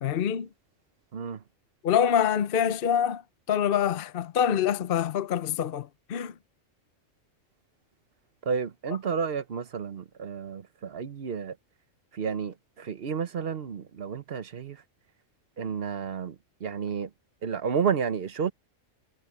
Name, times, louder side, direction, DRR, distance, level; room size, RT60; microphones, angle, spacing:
voice 1, 0.0-0.5 1.8-3.2 3.5-6.3, left 9 dB, 55° left, 0.8 m, -25 dB
voice 2, 8.5-11.5 12.1-14.8 15.6-16.3 16.6-17.1 17.4-18.5, right 6 dB, 50° right, 1.1 m, -31 dB
omnidirectional pair, 1.3 m